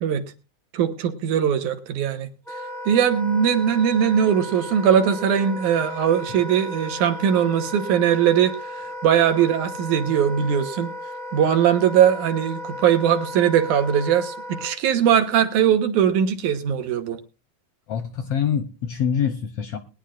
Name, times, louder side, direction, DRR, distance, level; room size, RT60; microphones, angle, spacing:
voice 1, 0.7-2.3 2.9-10.9 11.3-14.3 14.6-17.2, right 8 dB, 75° right, 8 dB, 2.6 m, -20 dB
Wind instrument woodwind instrument, 2.5-14.7, left 1 dB, ahead, 1.2 m, -35 dB
voice 2, 17.9-19.8, left 8 dB, 70° left, 8 dB, 1.6 m, -25 dB
21.0 x 10.5 x 2.5 m, 0.31 s
omnidirectional pair, 3.6 m